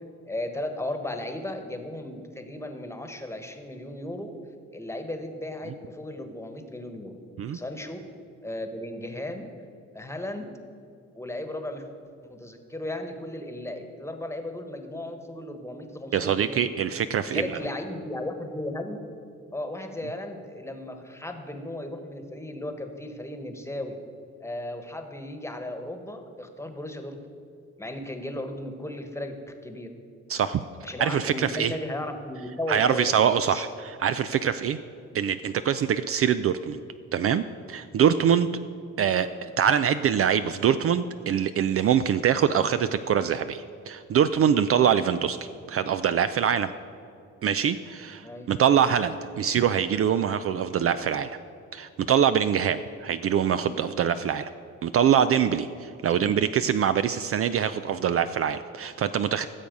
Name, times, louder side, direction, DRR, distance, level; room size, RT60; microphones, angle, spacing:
voice 1, 0.0-4.3 4.7-7.2 7.5-8.0 8.4-9.5 9.9-10.5 11.1-11.9 12.2-16.7 17.2-19.0 19.5-24.0 24.4-27.2 27.8-29.9 30.8-33.6 48.2-48.5 56.1-56.3, left 1 dB, 10° left, 6 dB, 1.3 m, -35 dB
voice 2, 16.1-17.4 30.3-30.6 31.0-31.7 32.7-34.8 35.1-36.8 37.1-38.5 39.0-45.4 45.7-46.7 47.4-51.4 51.7-54.5 54.8-59.5, right 8 dB, 50° right, 12 dB, 0.4 m, -24 dB
15.0 x 7.1 x 5.3 m, 2.6 s
cardioid pair, 90°, 30 cm